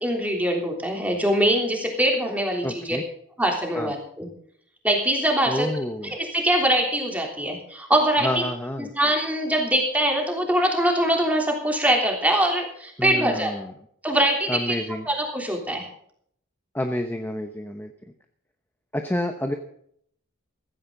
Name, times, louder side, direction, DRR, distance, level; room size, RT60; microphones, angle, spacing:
voice 1, 0.0-3.0 3.4-4.3 4.8-5.7 6.0-8.4 8.8-13.5 14.0-14.8 15.1-15.9, right 1 dB, 5° right, 1 dB, 3.4 m, -23 dB
voice 2, 2.6-3.0 3.7-3.9 5.5-6.1 8.2-8.9 13.0-13.7 14.5-15.1 16.7-17.9 18.9-19.5, left 1 dB, 10° left, 5 dB, 0.9 m, -28 dB
16.0 x 15.0 x 3.9 m, 0.66 s
head